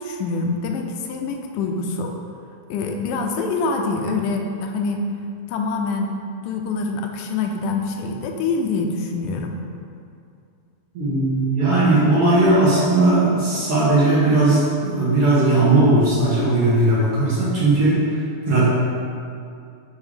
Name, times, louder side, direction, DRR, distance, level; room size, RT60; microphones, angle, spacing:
voice 1, 0.0-2.2 2.7-5.1 5.5-6.2 6.4-9.6, left 3 dB, 85° left, 3 dB, 2.0 m, -25 dB
voice 2, 10.9-18.0 18.5-18.7, right 2 dB, 50° right, -10 dB, 2.5 m, -17 dB
7.3 x 3.5 x 4.9 m, 2.4 s
omnidirectional pair, 3.6 m